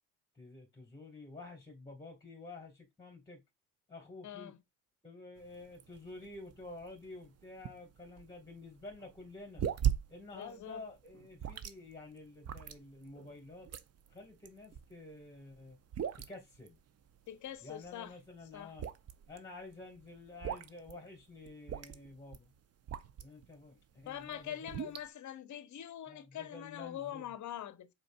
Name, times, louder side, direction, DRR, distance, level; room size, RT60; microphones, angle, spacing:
voice 1, 0.3-3.4 3.9-4.5 5.0-9.6 10.1-13.7 14.1-15.8 16.2-16.8 17.6-18.9 19.3-22.5 23.2-25.0 26.1-27.3, left 3 dB, 10° left, 1.9 m, -50 dB
voice 2, 4.2-4.6 10.3-10.8 17.3-18.1 18.5-18.7 24.1-27.9, left 11 dB, 40° left, 0.8 m, -44 dB
sound 1, 5.4-23.5 23.9-25.1, right 9 dB, 35° right, 0.6 m, -40 dB
5.1 x 4.3 x 2.4 m
hypercardioid pair, 60°, 45 cm